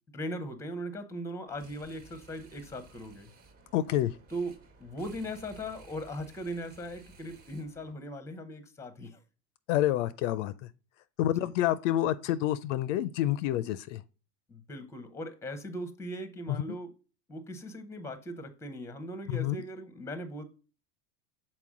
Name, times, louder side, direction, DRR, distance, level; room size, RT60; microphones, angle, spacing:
voice 1, 0.1-3.3 4.3-9.2 11.4-11.5 14.5-16.9 17.3-20.4, equal, 5° left, 0.7 m, -39 dB
sound 1, 1.5-7.9, right 3 dB, 35° right, 1.3 m, -56 dB
voice 2, 3.7-4.1 9.7-10.7 11.2-14.0 16.5-16.8 19.3-19.6, left 13 dB, 60° left, 0.5 m, -28 dB
6.0 x 4.4 x 3.5 m
supercardioid pair, 120°, 42 cm